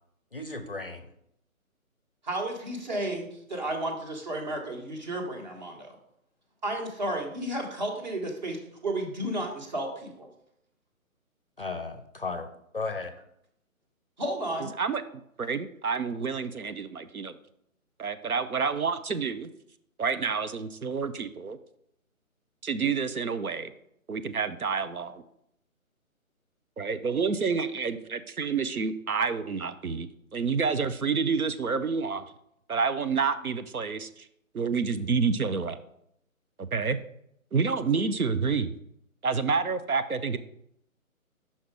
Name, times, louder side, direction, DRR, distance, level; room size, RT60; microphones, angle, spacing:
voice 1, 0.3-1.1 11.6-12.5 12.7-13.1, left 3 dB, 40° left, 9 dB, 0.5 m, -34 dB
voice 2, 2.2-6.0 6.6-8.6 8.8-10.3 14.2-14.7, right 1 dB, 30° right, 2 dB, 1.2 m, -32 dB
voice 3, 15.4-17.4 18.0-19.5 20.0-21.6 22.6-23.7 24.1-25.2 26.8-30.1 30.3-32.2 32.7-34.3 34.5-35.8 36.6-37.0 37.5-38.7 39.2-40.4, right 5 dB, 90° right, 11 dB, 0.6 m, -28 dB
5.6 x 4.6 x 4.6 m, 0.74 s
figure-of-eight pair, 145°, 43 cm